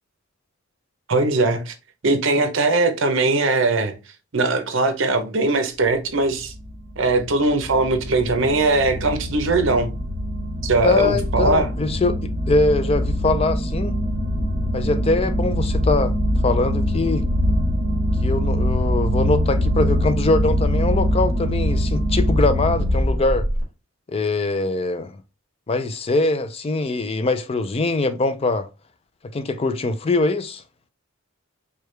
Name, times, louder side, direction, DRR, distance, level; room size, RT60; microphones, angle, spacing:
voice 1, 1.1-1.7 2.0-3.9 4.3-6.5 7.0-9.9 10.6-11.7, right 3 dB, 60° right, 0.7 m, -20 dB
sound 1, 6.1-23.6, equal, 40° right, 1.3 m, -23 dB
voice 2, 10.8-13.9 14.7-16.1 16.4-17.3 18.2-23.5 24.1-25.2 25.7-28.7 29.3-30.6, left 3 dB, 30° left, 0.4 m, -22 dB
4.7 x 2.3 x 3.2 m
head